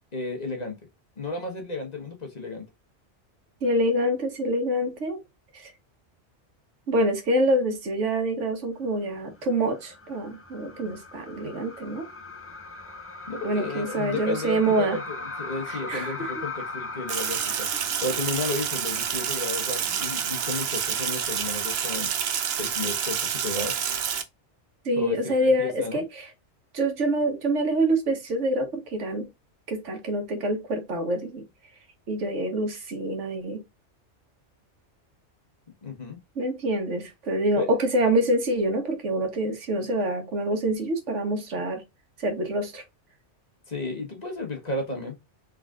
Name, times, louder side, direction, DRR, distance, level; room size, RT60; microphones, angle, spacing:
voice 1, 0.1-0.8 1.2-2.6 13.3-17.7 18.0-22.1 22.6-23.8 25.0-26.0 35.8-36.2 37.6-37.8 43.7-45.2, left 3 dB, 35° left, 1.2 m, -33 dB
voice 2, 3.6-5.2 5.5-5.7 6.9-12.0 13.4-15.0 15.7-16.3 24.8-26.3 26.7-29.3 29.7-31.5 32.1-33.6 36.3-41.8 42.2-42.8, right 1 dB, 90° right, 1.5 m, -26 dB
sound 1, 9.3-18.8 19.2-19.3 21.4-21.9, left 3 dB, 20° left, 0.4 m, -39 dB
Sink (filling or washing), 17.1-24.2, right 8 dB, 65° right, 0.8 m, -28 dB
4.0 x 3.6 x 2.4 m
omnidirectional pair, 1.2 m